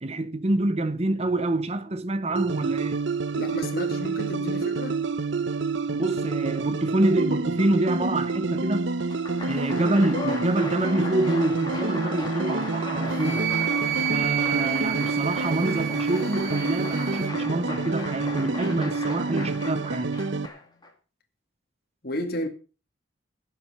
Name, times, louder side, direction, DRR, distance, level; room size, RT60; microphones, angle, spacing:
voice 1, 0.0-3.0 5.9-8.9 9.5-13.5 14.1-20.2, right 2 dB, 35° right, 0.7 m, -26 dB
sound 1, 2.4-20.5, right 3 dB, 70° right, 0.8 m, -28 dB
voice 2, 3.3-5.0 22.0-22.5, equal, 50° left, 2.3 m, -32 dB
Applause, 9.0-20.9, left 2 dB, 20° left, 2.6 m, -37 dB
Wind instrument woodwind instrument, 13.1-17.3, right 12 dB, 90° right, 2.3 m, -30 dB
15.5 x 7.6 x 5.7 m
head